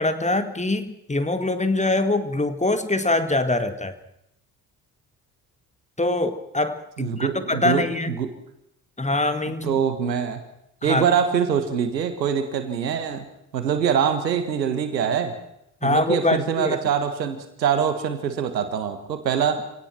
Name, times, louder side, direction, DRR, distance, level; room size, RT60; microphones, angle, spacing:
voice 1, 0.0-4.0 6.0-8.1 9.0-9.8 10.8-11.1 15.8-16.8, left 2 dB, 15° left, 10 dB, 2.0 m, -24 dB
voice 2, 7.0-7.8 8.2-8.3 9.6-10.4 10.8-13.2 13.5-15.3 15.8-19.6, right 7 dB, 85° right, 9 dB, 1.7 m, -24 dB
26.0 x 18.0 x 6.0 m, 0.78 s
figure-of-eight pair, 45°, 49 cm